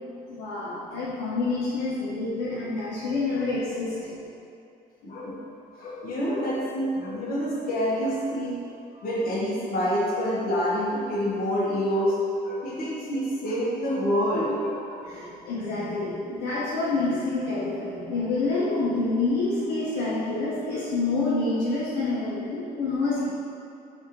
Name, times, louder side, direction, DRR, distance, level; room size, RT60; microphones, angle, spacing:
voice 1, 0.3-4.1 15.0-23.2, left 3 dB, 85° left, -8 dB, 0.7 m, -27 dB
voice 2, 5.0-5.3 5.8-8.6 9.0-15.1, equal, 60° left, -6 dB, 1.0 m, -27 dB
3.3 x 2.5 x 4.3 m, 2.6 s
cardioid pair, 110°, 17 cm